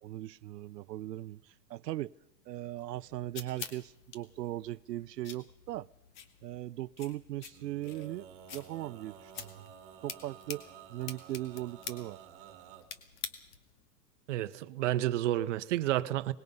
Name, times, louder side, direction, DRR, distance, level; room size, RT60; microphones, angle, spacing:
voice 1, 0.0-2.1 2.5-5.9 6.4-9.7 10.0-12.5, right 15 dB, 75° right, 0.7 m, -39 dB
sound 1, 2.8-13.8, left 7 dB, 45° left, 2.3 m, -48 dB
Male singing, 7.5-12.8, right 8 dB, 25° right, 2.5 m, -52 dB
voice 2, 14.3-16.3, right 14 dB, 45° right, 1.1 m, -30 dB
24.0 x 20.5 x 5.5 m
supercardioid pair, 165°, 49 cm